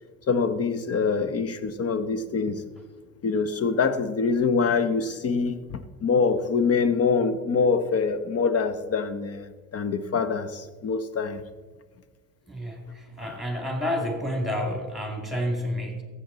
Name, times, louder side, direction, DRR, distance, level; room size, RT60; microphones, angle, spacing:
voice 1, 0.3-2.6 3.2-9.5 9.7-11.4 13.2-13.3, left 5 dB, 35° left, 13 dB, 0.9 m, -25 dB
voice 2, 12.5-16.0, equal, ahead, 3 dB, 2.5 m, -30 dB
14.5 x 7.7 x 4.0 m, 1.4 s
hypercardioid pair, 65°, 42 cm